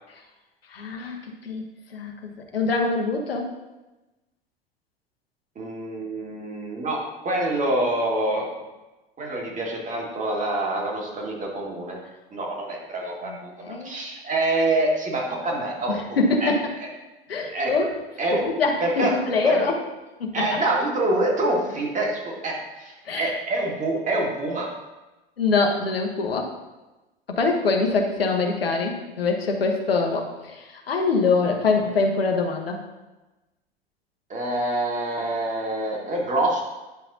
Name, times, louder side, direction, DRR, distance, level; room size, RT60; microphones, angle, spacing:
voice 1, 0.7-1.2 1.4-1.6 1.9-3.5 13.2-13.9 16.2-16.7 17.3-17.9 18.3-19.7 20.2-20.3 23.1-23.3 25.4-26.5 27.3-32.8, left 3 dB, 80° left, 2 dB, 1.0 m, -24 dB
voice 2, 5.6-8.5 9.2-12.0 12.3-16.5 16.8-16.9 17.5-17.7 18.2-18.5 18.8-19.1 19.4-19.6 20.3-24.7 34.3-36.6, right 2 dB, 25° right, -1 dB, 1.8 m, -26 dB
9.5 x 5.8 x 2.7 m, 1.1 s
figure-of-eight pair, 80°, 29 cm